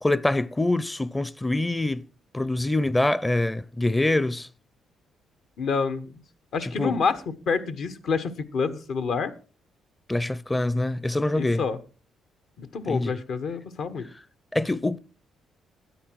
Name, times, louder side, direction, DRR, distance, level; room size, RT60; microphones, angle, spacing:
voice 1, 0.0-2.1 2.3-4.5 6.6-7.0 10.1-11.6 12.9-13.2 14.5-15.0, left 2 dB, 15° left, 0.5 m, -25 dB
voice 2, 5.6-6.2 6.5-7.2 7.5-9.3 11.3-11.8 12.6-14.1, left 5 dB, 70° left, 1.3 m, -28 dB
12.5 x 9.5 x 4.7 m
cardioid pair, 90°, 0 cm